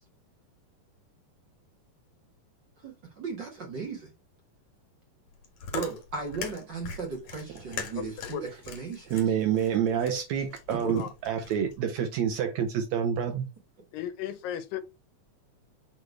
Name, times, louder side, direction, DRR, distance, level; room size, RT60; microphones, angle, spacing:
voice 1, 2.8-4.1 5.7-9.2 10.7-10.8, right 4 dB, 50° right, 1.4 m, -36 dB
Chewing mastication, 5.3-11.8, left 6 dB, 65° left, 2.7 m, -41 dB
voice 2, 9.1-13.5, right 8 dB, 75° right, 1.7 m, -28 dB
voice 3, 10.8-11.1 13.9-14.8, left 10 dB, 90° left, 2.5 m, -35 dB
6.7 x 3.2 x 4.4 m
omnidirectional pair, 3.8 m